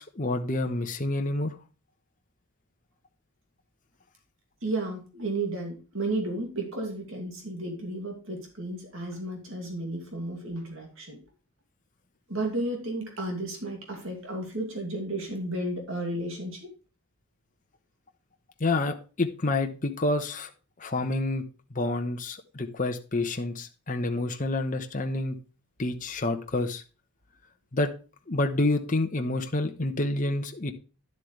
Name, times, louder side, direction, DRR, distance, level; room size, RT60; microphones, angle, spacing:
voice 1, 0.0-1.5 18.6-20.5 20.8-21.4 21.7-25.4 25.8-26.8 27.7-27.9 28.3-30.7, left 2 dB, 35° left, 4 dB, 0.9 m, -28 dB
voice 2, 4.6-11.2 12.3-16.7, right 2 dB, 60° right, 2 dB, 2.4 m, -33 dB
11.0 x 7.5 x 3.3 m, 0.33 s
head